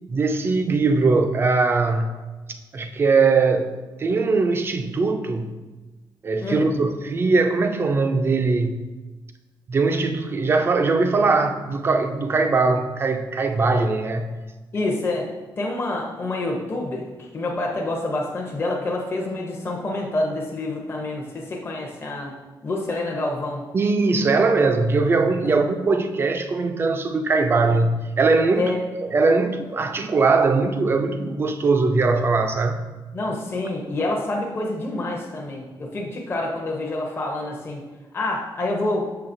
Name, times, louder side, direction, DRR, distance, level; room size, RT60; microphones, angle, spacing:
voice 1, 0.1-2.2 2.7-5.6 6.2-8.9 9.7-14.3 23.7-28.7 29.0-32.8, right 3 dB, 30° right, 7 dB, 0.4 m, -21 dB
voice 2, 14.7-15.3 15.6-22.4 22.6-23.7 25.4-25.5 28.5-28.8 33.1-37.8 38.1-39.1, left 2 dB, 30° left, -1 dB, 0.7 m, -27 dB
6.4 x 5.7 x 2.6 m, 1.2 s
wide cardioid pair, 165°, 8 cm